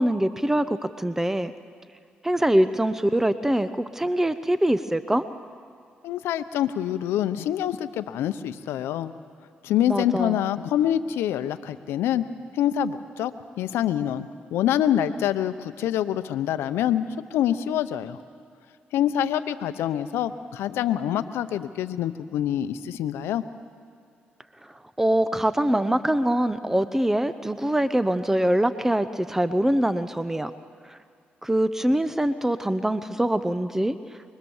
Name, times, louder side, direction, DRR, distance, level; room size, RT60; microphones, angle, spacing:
voice 1, 0.0-1.5 2.2-5.2 9.9-10.4 24.6-30.5 30.9-31.0 31.4-34.0, right 1 dB, 10° right, 12 dB, 0.9 m, -23 dB
voice 2, 6.0-9.1 9.6-12.3 12.5-13.3 13.6-18.2 18.9-23.4, left 10 dB, 90° left, 12 dB, 0.8 m, -26 dB
25.0 x 21.5 x 7.2 m, 2.3 s
cardioid pair, 65°, 4 cm